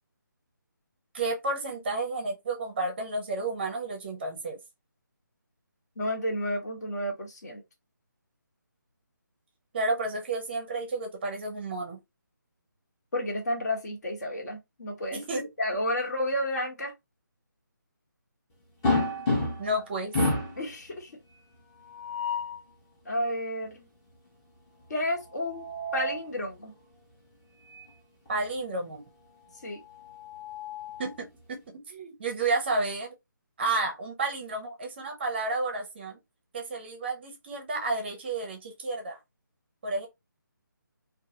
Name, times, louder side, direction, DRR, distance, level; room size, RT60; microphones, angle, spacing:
voice 1, 1.1-4.6 9.7-12.0 15.1-15.4 19.6-20.2 28.3-29.0 31.0-31.6 31.9-33.1 33.6-36.2 36.5-39.2 39.8-40.1, right 2 dB, 30° right, 0.6 m, -31 dB
voice 2, 6.0-7.6 13.1-15.2 15.6-16.9 20.6-21.1 23.0-23.9 24.9-25.7 25.9-26.7 29.6-29.8, left 1 dB, 55° left, 1.1 m, -31 dB
sound 1, 18.8-19.8 20.1-20.6 21.8-22.6 25.3-26.3 27.7-27.9 28.3-28.4 29.9-31.1, left 2 dB, 15° left, 0.7 m, -30 dB
2.3 x 2.2 x 2.8 m
figure-of-eight pair, 155°, 11 cm